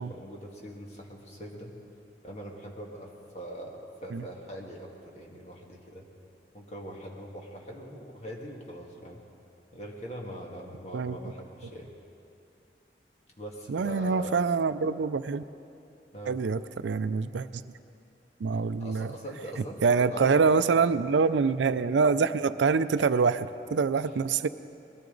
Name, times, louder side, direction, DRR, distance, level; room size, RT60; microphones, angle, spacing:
voice 1, 0.0-1.7 2.2-4.9 5.1-6.1 6.5-9.2 9.7-11.9 13.4-14.3 16.1-16.4 18.8-20.6 24.0-24.1, equal, 40° left, -1 dB, 1.8 m, -42 dB
voice 2, 13.7-15.4 16.3-17.6 18.4-19.1 19.8-24.5, right 5 dB, 90° right, 13 dB, 0.4 m, -25 dB
21.0 x 14.0 x 3.9 m, 2.6 s
head